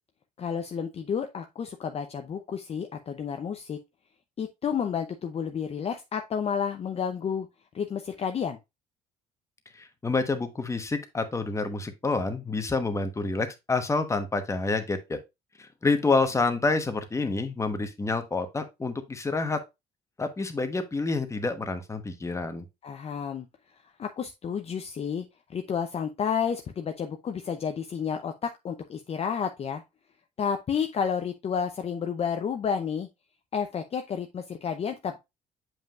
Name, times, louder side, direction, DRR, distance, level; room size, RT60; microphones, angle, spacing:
voice 1, 0.4-3.8 4.4-7.5 7.7-8.6 22.8-23.5 24.0-29.8 30.4-33.1 33.5-35.2, left 7 dB, 35° left, 0.6 m, -31 dB
voice 2, 9.7-15.2 15.6-19.6 20.2-22.7, left 3 dB, 15° left, 1.1 m, -28 dB
7.4 x 5.3 x 2.4 m
cardioid pair, 110°, 17 cm